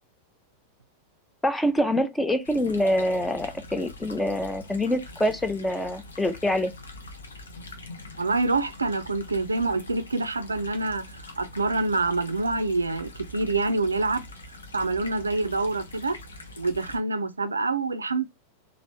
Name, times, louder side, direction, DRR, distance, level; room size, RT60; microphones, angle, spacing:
voice 1, 1.4-6.7, left 1 dB, 10° left, 0.5 m, -25 dB
sound 1, 2.4-17.0, left 2 dB, 70° left, 0.7 m, -44 dB
voice 2, 8.2-14.2 14.7-16.2 16.6-18.2, right 3 dB, 80° right, 0.3 m, -26 dB
3.0 x 2.4 x 2.9 m
figure-of-eight pair, 90°, 0 cm